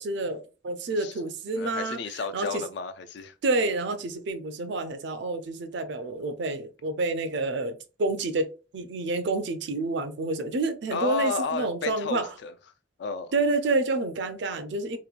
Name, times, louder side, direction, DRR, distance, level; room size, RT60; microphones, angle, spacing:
voice 1, 0.0-2.6 3.4-12.3 13.3-15.0, right 2 dB, 55° right, 0.4 m, -29 dB
voice 2, 1.6-3.3 10.9-12.5 13.0-13.3, left 4 dB, 55° left, 0.3 m, -32 dB
2.9 x 2.1 x 2.4 m
head